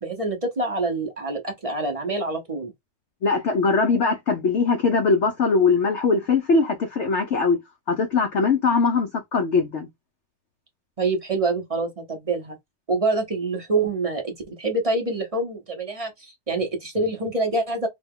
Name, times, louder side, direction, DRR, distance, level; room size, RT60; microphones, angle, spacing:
voice 1, 0.0-2.7 11.0-12.6 12.9-17.9, right 2 dB, 45° right, 0.4 m, -26 dB
voice 2, 3.2-7.6 7.9-9.9, left 4 dB, 75° left, 0.6 m, -21 dB
4.1 x 2.2 x 3.5 m
omnidirectional pair, 1.9 m